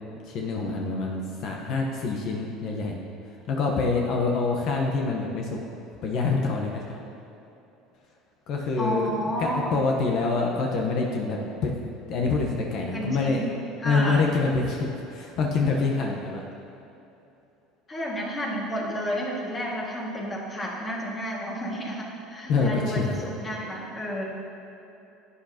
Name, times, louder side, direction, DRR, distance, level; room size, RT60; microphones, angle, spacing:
voice 1, 0.2-3.0 3.2-5.6 6.0-7.0 8.5-9.1 9.4-11.8 12.1-13.5 13.8-16.4 22.5-23.2, left 4 dB, 60° left, 0 dB, 1.1 m, -26 dB
voice 2, 8.8-9.7 12.9-14.3 17.9-24.2, equal, 25° left, -3 dB, 2.1 m, -31 dB
11.5 x 8.4 x 2.9 m, 2.9 s
supercardioid pair, 105°, 0 cm